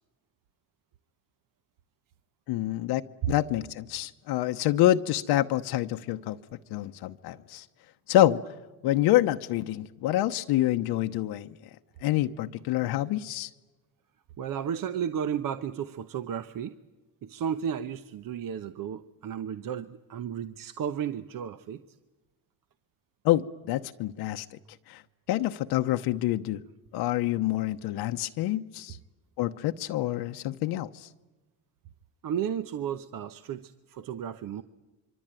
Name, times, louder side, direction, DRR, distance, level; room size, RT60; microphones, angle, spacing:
voice 1, 2.5-3.0 3.3-6.4 6.7-7.7 8.1-8.4 8.8-11.5 12.0-13.5 23.2-24.6 24.9-25.0 25.3-26.6 26.9-29.0 29.4-31.1, left 14 dB, 80° left, 0.9 m, -27 dB
voice 2, 14.4-16.8 17.2-21.8 32.2-34.6, right 8 dB, 60° right, 1.0 m, -33 dB
25.0 x 24.0 x 9.0 m
cardioid pair, 90°, 38 cm